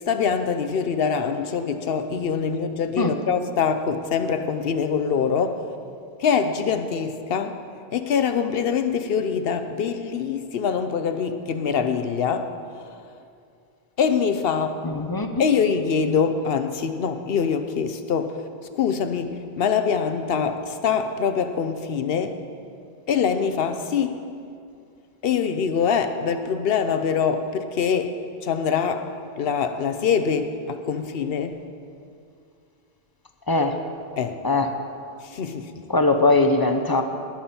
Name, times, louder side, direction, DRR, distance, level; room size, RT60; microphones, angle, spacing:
voice 1, 0.1-5.7 6.2-7.6 7.9-12.5 14.0-14.8 15.4-18.4 18.8-22.3 23.1-24.2 25.2-28.1 28.4-29.1 29.4-31.5 34.2-34.4 35.2-35.7, left 6 dB, 70° left, 9 dB, 0.9 m, -24 dB
voice 2, 14.8-15.3 33.5-33.7 34.4-34.7 35.9-37.0, left 2 dB, 25° left, 6 dB, 0.6 m, -20 dB
19.0 x 7.3 x 4.3 m, 2.4 s
omnidirectional pair, 1.1 m